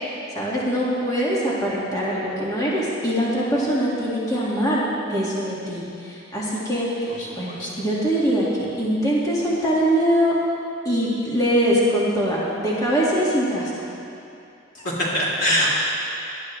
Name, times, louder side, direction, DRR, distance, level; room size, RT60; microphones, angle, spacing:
voice 1, 0.3-4.8 5.1-10.3 10.9-13.7, equal, 20° left, -6 dB, 1.8 m, -23 dB
voice 2, 7.1-7.8 14.7-15.7, equal, 85° left, -6 dB, 3.3 m, -24 dB
18.5 x 11.5 x 3.2 m, 2.7 s
head